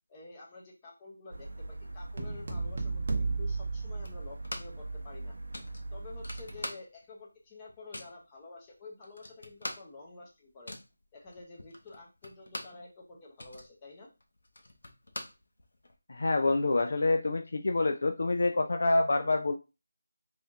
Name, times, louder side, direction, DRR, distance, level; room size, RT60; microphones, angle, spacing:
voice 1, 0.1-5.4 5.9-10.7 11.1-14.1, left 3 dB, 15° left, -3 dB, 0.8 m, -49 dB
sound 1, 1.3-6.7, right 2 dB, 75° right, 0.6 m, -42 dB
sound 2, 2.2-4.7, right 3 dB, 35° right, 0.7 m, -33 dB
sound 3, 4.0-4.9 5.1-5.2 5.5-7.2 7.5-8.2 8.7-8.8 9.0-12.9 13.2-16.0, left 1 dB, 70° left, 0.8 m, -44 dB
voice 2, 16.1-19.5, left 2 dB, 50° left, 5 dB, 0.4 m, -27 dB
3.4 x 2.7 x 3.5 m, 0.28 s
figure-of-eight pair, 175°, 0 cm